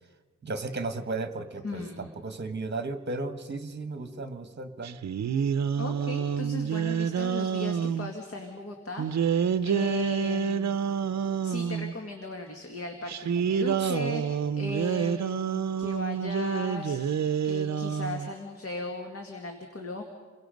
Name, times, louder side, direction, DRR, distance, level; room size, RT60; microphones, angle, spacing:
voice 1, 0.4-5.0 13.8-13.9, right 3 dB, 35° right, 9 dB, 1.4 m, -35 dB
voice 2, 1.6-2.0 5.8-10.7 11.4-17.2 17.4-20.0, left 1 dB, 45° left, 3 dB, 2.0 m, -37 dB
sound 1, 4.8-8.1 9.0-11.9 13.1-18.3, right 7 dB, 60° right, 0.6 m, -28 dB
29.0 x 23.0 x 5.2 m, 1.4 s
wide cardioid pair, 140°, 31 cm